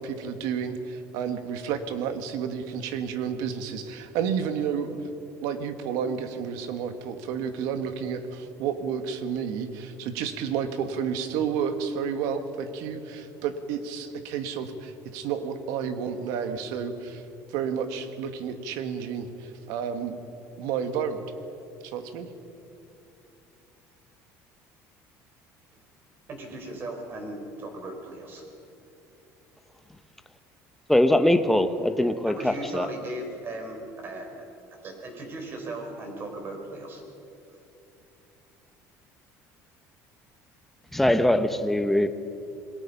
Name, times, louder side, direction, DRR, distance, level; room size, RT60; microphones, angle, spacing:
voice 1, 0.0-5.0 5.4-17.2 17.5-20.2 20.6-21.2 21.8-22.3, right 7 dB, 80° right, 8 dB, 1.9 m, -31 dB
voice 2, 26.3-28.4 32.0-34.5 34.8-37.0 37.5-37.6, right 2 dB, 35° right, 3 dB, 4.8 m, -37 dB
voice 3, 30.9-32.9 40.9-42.1, left 1 dB, 5° left, 9 dB, 1.1 m, -22 dB
28.0 x 21.5 x 5.7 m, 2.9 s
cardioid pair, 145°, 6 cm